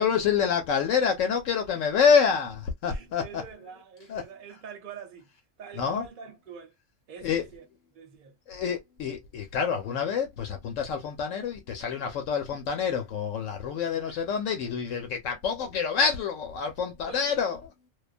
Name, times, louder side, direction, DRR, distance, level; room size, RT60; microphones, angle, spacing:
voice 1, 0.0-3.4 4.1-4.2 5.8-6.0 7.2-7.4 8.5-17.6, left 6 dB, 75° left, 1.0 m, -27 dB
voice 2, 2.9-5.3 5.6-6.7 7.1-7.6 7.9-8.4 13.9-14.2 17.0-17.3, right 6 dB, 45° right, 0.8 m, -45 dB
2.4 x 2.2 x 2.4 m
omnidirectional pair, 1.3 m